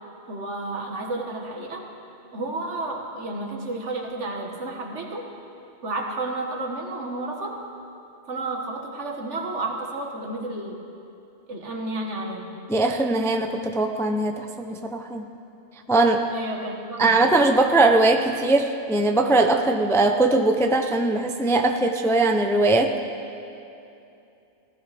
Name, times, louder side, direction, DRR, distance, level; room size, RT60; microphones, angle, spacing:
voice 1, 0.3-1.8 2.3-5.3 5.8-7.6 8.3-10.8 11.5-12.5 16.3-17.2, right 2 dB, 85° right, 1 dB, 1.7 m, -31 dB
voice 2, 12.7-15.3 15.9-16.3 17.0-23.0, right 2 dB, 5° left, 5 dB, 0.3 m, -20 dB
18.0 x 14.0 x 3.4 m, 2.7 s
omnidirectional pair, 1.2 m